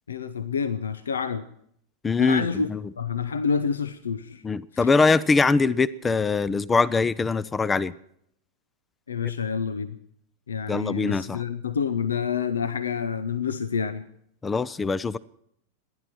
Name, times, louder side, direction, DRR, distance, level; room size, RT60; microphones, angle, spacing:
voice 1, 0.1-1.5 2.2-2.7 3.0-4.4 4.7-4.9 9.1-10.0 10.5-14.0, left 6 dB, 70° left, 0.7 m, -28 dB
voice 2, 2.0-2.8 4.4-7.9 10.7-11.4 14.4-15.2, left 4 dB, 15° left, 0.6 m, -22 dB
28.0 x 11.0 x 4.4 m
figure-of-eight pair, 90°, 0 cm